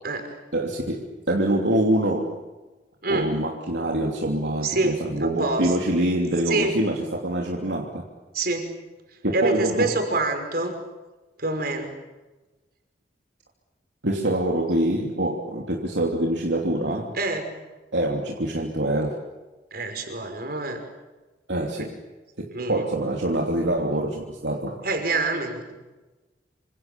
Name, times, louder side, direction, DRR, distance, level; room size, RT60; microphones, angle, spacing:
voice 1, 0.5-2.4 3.1-8.0 9.2-9.9 14.0-17.2 17.9-19.1 21.5-22.0 22.4-24.8, right 1 dB, 70° right, 0 dB, 3.0 m, -25 dB
voice 2, 3.0-3.3 4.6-5.0 5.4-5.7 6.5-6.7 8.3-8.7 9.3-10.7 11.4-11.9 17.1-17.4 19.7-20.8 21.8-21.9 22.5-22.8 24.8-25.6, right 2 dB, 55° right, 5 dB, 5.6 m, -26 dB
27.5 x 26.5 x 7.1 m, 1.2 s
head